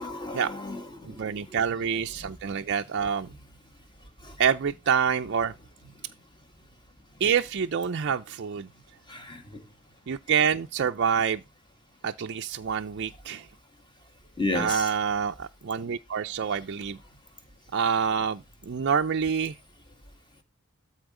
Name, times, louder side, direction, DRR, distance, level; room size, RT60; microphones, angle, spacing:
voice 1, 0.0-1.4 4.2-4.3 9.1-9.4 14.4-14.9, left 2 dB, 20° left, 1.7 m, -33 dB
voice 2, 1.1-3.3 4.4-5.5 7.2-8.7 10.1-11.4 12.0-13.5 14.5-17.0 17.7-19.5, right 7 dB, 50° right, 0.4 m, -27 dB
13.0 x 4.4 x 3.7 m
head